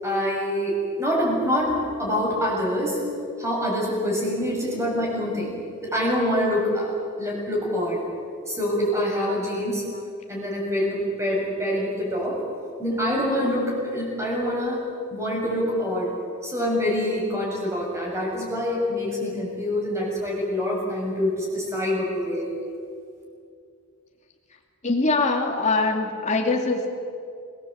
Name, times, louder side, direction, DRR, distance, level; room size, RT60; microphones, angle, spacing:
voice 1, 0.0-3.0 3.4-8.0 8.5-9.8 10.3-12.4 12.8-14.8 15.1-16.1 16.4-22.5, equal, 15° right, -2 dB, 7.3 m, -25 dB
voice 2, 24.8-26.9, left 3 dB, 30° left, 1 dB, 2.9 m, -23 dB
28.5 x 19.5 x 8.2 m, 2.3 s
head